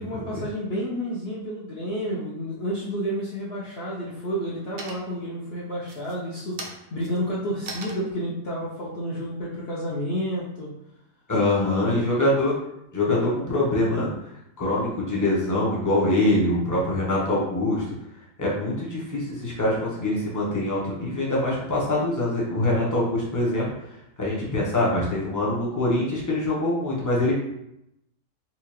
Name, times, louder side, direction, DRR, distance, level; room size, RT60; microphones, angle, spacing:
voice 1, 0.0-10.7 11.7-12.1, equal, 70° left, -5 dB, 0.5 m, -30 dB
sound 1, 3.1-3.7 4.1-4.5 4.8-5.3 5.8-10.2, right 3 dB, 75° right, 0.6 m, -41 dB
voice 2, 11.3-12.5 12.9-14.1 14.6-17.8 18.4-23.6 24.2-27.3, left 1 dB, 25° left, -5 dB, 0.4 m, -24 dB
4.3 x 2.4 x 2.9 m, 0.81 s
omnidirectional pair, 1.9 m